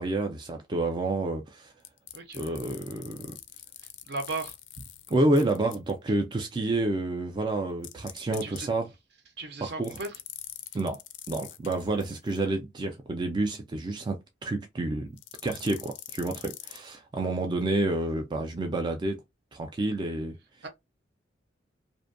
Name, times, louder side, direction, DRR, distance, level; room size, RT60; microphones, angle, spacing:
voice 1, 0.0-1.7 2.4-3.3 5.1-8.9 9.6-9.9 10.7-11.0 11.3-15.1 15.4-19.2 19.5-20.4, right 2 dB, 25° right, 0.3 m, -29 dB
sound 1, 1.8-5.9 7.8-8.6 9.8-12.4 15.2-16.8, left 13 dB, 65° left, 0.3 m, -44 dB
voice 2, 2.1-2.5 3.8-4.6 8.3-8.7 9.4-10.1 20.6-20.7, right 3 dB, 60° right, 0.7 m, -36 dB
2.5 x 2.1 x 2.5 m
head